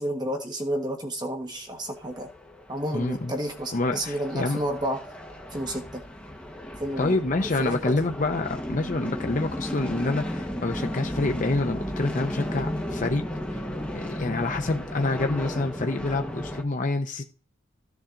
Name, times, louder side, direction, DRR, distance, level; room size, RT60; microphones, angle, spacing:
voice 1, 0.0-2.3 2.7-5.0 5.5-6.0 6.8-7.9, right 1 dB, 20° right, 4 dB, 1.3 m, -31 dB
sound 1, 1.9-16.6, left 1 dB, 5° left, 1.3 m, -35 dB
voice 2, 2.9-3.3 3.7-4.6 7.0-13.2 13.9-17.2, left 2 dB, 40° left, 5 dB, 0.7 m, -27 dB
14.0 x 7.1 x 3.8 m, 0.39 s
head